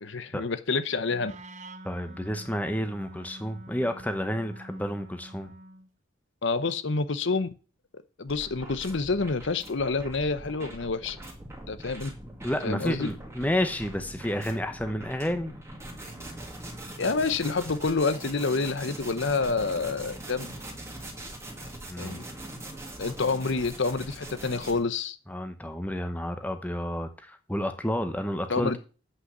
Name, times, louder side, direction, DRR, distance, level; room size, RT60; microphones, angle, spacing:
voice 1, 0.0-1.3 6.4-7.5 8.2-11.2 11.7-12.1 12.6-13.1 17.0-20.5 22.0-22.2 23.0-25.2 28.5-28.8, left 4 dB, 60° left, 0.8 m, -28 dB
Wind instrument woodwind instrument, 1.0-5.9, right 1 dB, 35° right, 0.7 m, -47 dB
voice 2, 1.8-5.5 12.4-15.5 21.9-22.2 25.3-28.8, equal, 5° left, 0.9 m, -30 dB
sound 1, 8.3-24.8, right 1 dB, 15° right, 2.1 m, -42 dB
8.2 x 5.8 x 7.9 m
head